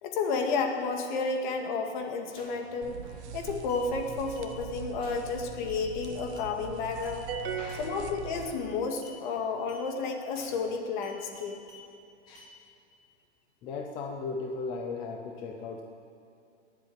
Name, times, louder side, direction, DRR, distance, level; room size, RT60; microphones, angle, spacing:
voice 1, 0.0-3.0 3.3-7.3 7.8-11.6, left 4 dB, 45° left, 3 dB, 2.0 m, -31 dB
sound 1, 2.4-2.7 3.0-3.3 3.7-3.9 4.4-4.5 5.0-5.3 5.7-6.5 7.0-7.2 7.7-8.0 8.4-8.7 9.0-9.2 9.7-9.9 10.4-10.7 11.0-11.9 12.4-12.5, left 1 dB, 15° right, 2.6 m, -52 dB
sound 2, 2.8-8.6, right 7 dB, 70° right, 1.2 m, -43 dB
sound 3, 7.3-9.0, right 6 dB, 55° right, 1.7 m, -38 dB
voice 2, 7.6-7.9 12.3-12.6 13.6-15.8, left 4 dB, 10° left, 2 dB, 0.4 m, -37 dB
19.5 x 8.1 x 8.7 m, 2.6 s
supercardioid pair, 170°, 35 cm